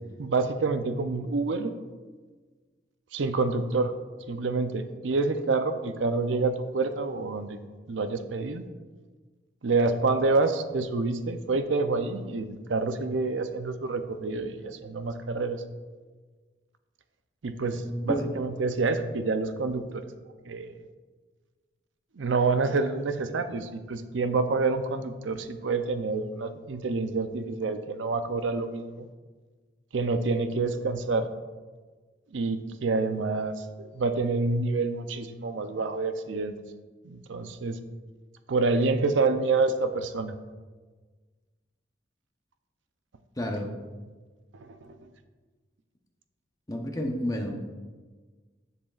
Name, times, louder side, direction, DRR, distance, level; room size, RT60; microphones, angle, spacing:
voice 1, 0.2-1.7 3.1-3.9 4.3-7.6 7.9-8.6 9.6-15.6 17.4-20.0 20.5-20.8 22.2-29.1 29.9-31.3 32.3-36.5 37.0-37.8 38.5-40.3 44.5-45.1, right 3 dB, 85° right, 9 dB, 0.6 m, -27 dB
voice 2, 17.7-18.3 43.4-43.7 46.7-47.7, equal, 20° left, 2 dB, 0.8 m, -31 dB
10.5 x 6.8 x 2.4 m, 1.4 s
head